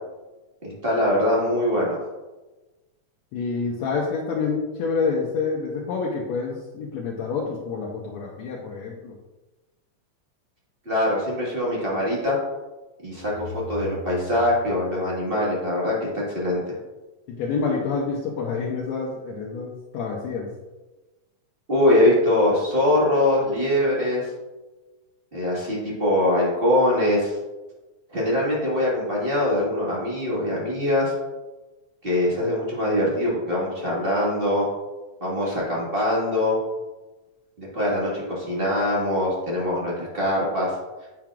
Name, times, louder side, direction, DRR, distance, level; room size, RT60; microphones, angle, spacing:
voice 1, 0.6-2.0 10.8-12.4 13.0-16.6 21.7-24.3 25.3-27.3 28.1-31.1 32.0-34.7 35.2-36.6 37.6-40.7, left 1 dB, 30° right, -6 dB, 1.0 m, -23 dB
voice 2, 3.3-9.2 17.3-20.5, left 4 dB, 75° left, -2 dB, 1.8 m, -28 dB
sound 1, 13.1-16.0, left 5 dB, 70° right, 2.4 m, -40 dB
8.8 x 5.7 x 2.4 m, 1.1 s
omnidirectional pair, 3.6 m